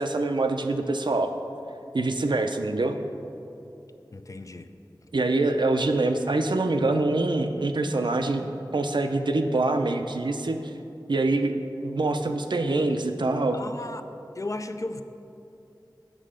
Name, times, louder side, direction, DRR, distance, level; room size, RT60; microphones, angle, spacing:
voice 1, 0.0-1.4 1.9-3.0 5.1-8.5 8.7-10.6 11.1-13.6, right 2 dB, 70° right, 6 dB, 0.5 m, -25 dB
voice 2, 4.1-4.7 13.5-14.0 14.4-15.0, left 2 dB, 40° left, 8 dB, 0.4 m, -35 dB
7.5 x 6.5 x 5.0 m, 2.8 s
wide cardioid pair, 55°, 8 cm